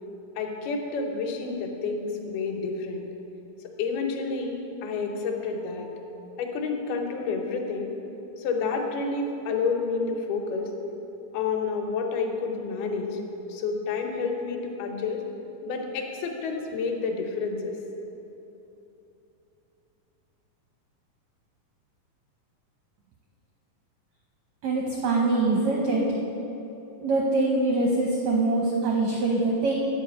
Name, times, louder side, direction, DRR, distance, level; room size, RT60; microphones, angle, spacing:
voice 1, 0.4-3.0 3.8-5.9 6.4-7.9 8.4-10.7 11.3-13.2 13.5-15.2 15.6-17.7, left 4 dB, 85° left, 2 dB, 2.9 m, -29 dB
voice 2, 24.6-26.1 27.0-29.7, right 2 dB, 80° right, -1 dB, 1.5 m, -24 dB
9.8 x 5.1 x 7.8 m, 3.0 s
omnidirectional pair, 4.3 m